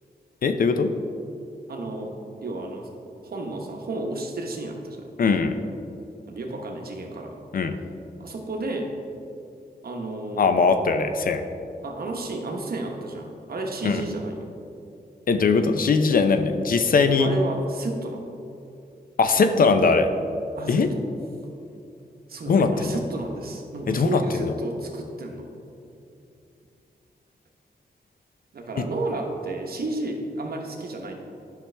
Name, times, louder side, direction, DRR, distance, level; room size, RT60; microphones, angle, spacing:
voice 1, 0.4-0.9 5.2-5.6 7.5-7.8 10.4-11.4 13.8-14.0 15.3-17.3 19.2-20.1 20.7-20.9 22.5-23.0 23.9-24.5 28.8-28.9, left 4 dB, 60° left, 8 dB, 0.5 m, -20 dB
voice 2, 1.7-2.1 2.4-2.9 3.2-5.1 6.3-7.4 8.2-8.9 9.8-10.5 11.8-14.5 17.2-18.3 20.6-21.0 22.3-25.5 28.5-31.1, right 2 dB, 65° right, 2 dB, 1.1 m, -32 dB
10.5 x 5.8 x 3.4 m, 2.6 s
wide cardioid pair, 105°, 17 cm